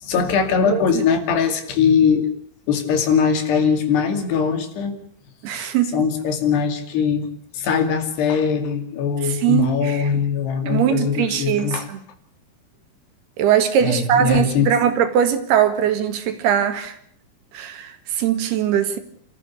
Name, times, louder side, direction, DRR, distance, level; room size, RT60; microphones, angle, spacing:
voice 1, 0.0-2.3 2.7-5.0 5.5-7.3 7.5-11.9 13.8-14.7, left 6 dB, 90° left, 4.6 m, -21 dB
voice 2, 5.4-6.1 9.2-10.1 10.7-12.0 13.4-17.0 17.5-19.0, right 9 dB, 75° right, 3.9 m, -21 dB
28.0 x 14.5 x 8.4 m
omnidirectional pair, 4.6 m